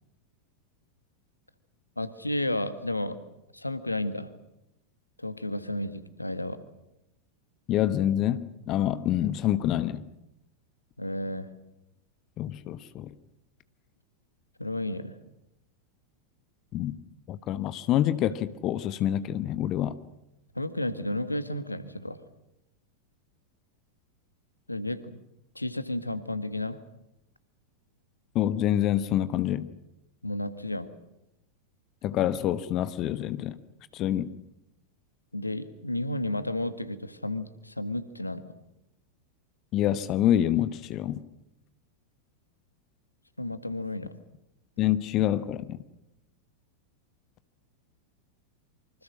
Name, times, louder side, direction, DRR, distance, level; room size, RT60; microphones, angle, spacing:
voice 1, 2.0-3.2 3.5-4.3 5.2-6.6 11.0-11.5 14.6-15.2 20.5-22.2 24.7-25.2 25.5-26.8 30.2-30.9 35.3-38.5 43.4-44.2, left 1 dB, 85° left, 12 dB, 1.6 m, -32 dB
voice 2, 7.7-10.0 12.4-13.1 16.7-17.0 17.3-19.9 28.3-29.7 32.0-33.6 33.9-34.3 39.7-41.2 44.8-45.8, left 12 dB, 35° left, 14 dB, 1.1 m, -26 dB
26.5 x 25.0 x 6.4 m, 0.88 s
figure-of-eight pair, 90°, 0 cm